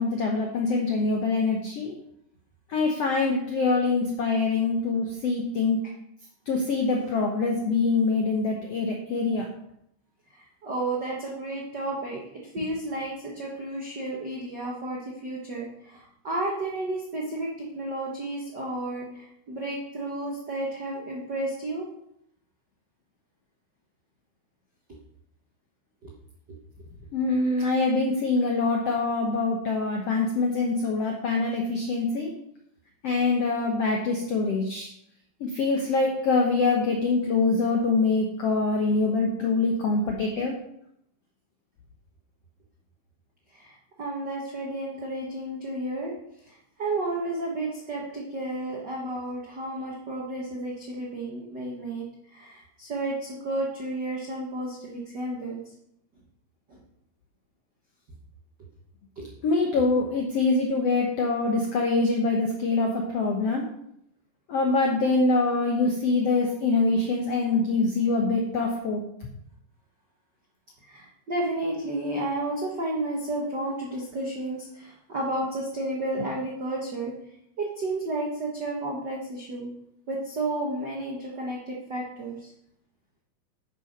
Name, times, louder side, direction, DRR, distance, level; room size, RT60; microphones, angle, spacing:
voice 1, 0.0-1.9 2.7-5.8 6.5-9.5 27.1-32.3 33.0-34.9 35.4-40.5 59.4-63.7 64.5-69.0, left 3 dB, 75° left, 1 dB, 1.4 m, -24 dB
voice 2, 10.3-12.2 12.5-21.9 26.0-26.1 43.5-46.1 46.4-55.6 56.7-56.8 59.2-59.3 70.8-77.1 77.6-79.7 80.1-82.5, right 2 dB, 65° right, -3 dB, 1.0 m, -32 dB
10.5 x 6.2 x 5.2 m, 0.75 s
omnidirectional pair, 4.4 m